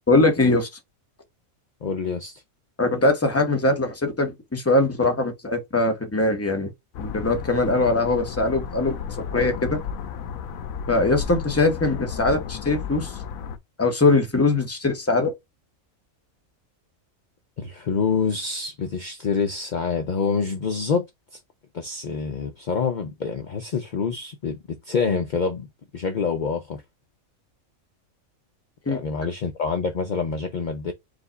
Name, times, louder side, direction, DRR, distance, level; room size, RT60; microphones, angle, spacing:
voice 1, 0.1-0.7 2.8-6.7 7.0-8.9 9.3-9.8 10.9-13.1 13.8-15.3 28.9-29.0, left 2 dB, 10° left, 0.8 m, -21 dB
voice 2, 1.8-2.4 17.6-21.1 21.7-25.7 25.9-26.8 28.9-30.9, left 5 dB, 55° left, 0.5 m, -26 dB
sound 1, 6.9-13.6, left 7 dB, 80° left, 1.0 m, -33 dB
5.0 x 2.3 x 3.8 m
omnidirectional pair, 1.5 m